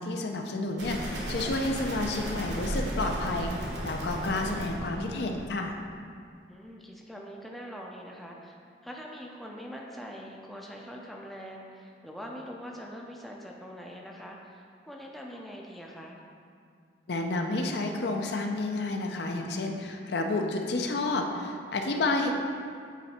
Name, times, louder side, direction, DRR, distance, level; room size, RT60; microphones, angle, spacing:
voice 1, 0.0-5.7 17.1-22.3, left 2 dB, 60° left, 3 dB, 0.5 m, -30 dB
sound 1, 0.8-5.7, right 1 dB, 65° right, 1.2 m, -35 dB
voice 2, 6.5-8.6 8.8-16.2, equal, ahead, -1 dB, 0.4 m, -43 dB
8.4 x 3.4 x 4.2 m, 2.3 s
head